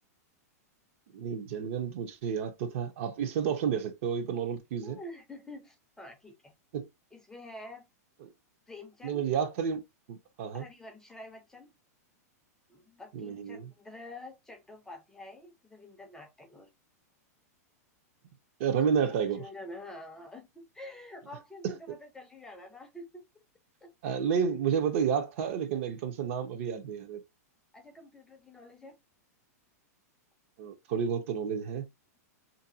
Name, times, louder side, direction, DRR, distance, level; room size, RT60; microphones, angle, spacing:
voice 1, 1.1-5.0 6.7-6.9 9.0-9.8 10.1-10.6 13.1-13.7 18.6-19.4 21.6-21.7 24.0-27.2 30.6-31.8, right 7 dB, 50° right, 0.6 m, -30 dB
voice 2, 4.8-6.5 7.1-7.9 8.7-9.2 10.5-11.7 12.7-16.7 18.9-23.2 23.8-23.9 27.7-29.0, left 1 dB, 5° left, 0.5 m, -47 dB
2.6 x 2.6 x 2.6 m
supercardioid pair, 155°, 9 cm